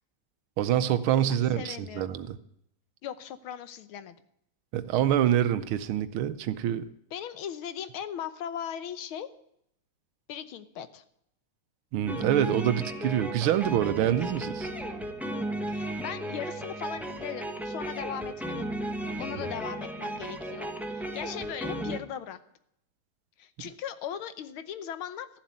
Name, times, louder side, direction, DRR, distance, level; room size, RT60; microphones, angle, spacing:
voice 1, 0.6-2.4 4.7-6.9 11.9-14.7, right 11 dB, 75° right, 12 dB, 1.6 m, -26 dB
voice 2, 1.3-2.2 3.0-4.2 7.1-9.3 10.3-11.0 15.7-18.7 19.2-22.4 23.4-25.4, left 9 dB, 75° left, 12 dB, 1.6 m, -38 dB
sound 1, 12.1-22.0, right 1 dB, ahead, 0.4 m, -35 dB
14.0 x 7.4 x 9.5 m, 0.74 s
omnidirectional pair, 2.4 m